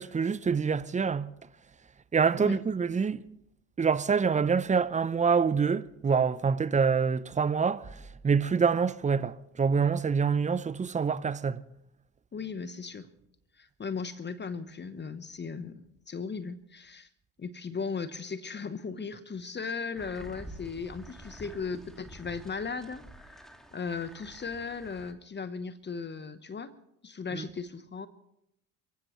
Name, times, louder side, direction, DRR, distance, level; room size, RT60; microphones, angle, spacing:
voice 1, 0.0-1.3 2.1-3.3 3.8-11.6 27.3-27.5, right 6 dB, 20° right, 0.7 m, -26 dB
voice 2, 12.3-13.1 13.5-17.1 17.4-26.7 27.0-28.1, left 5 dB, 25° left, 1.1 m, -37 dB
sound 1, 20.0-25.1, equal, ahead, 2.1 m, -49 dB
29.0 x 15.5 x 3.2 m
hypercardioid pair, 60°, 40 cm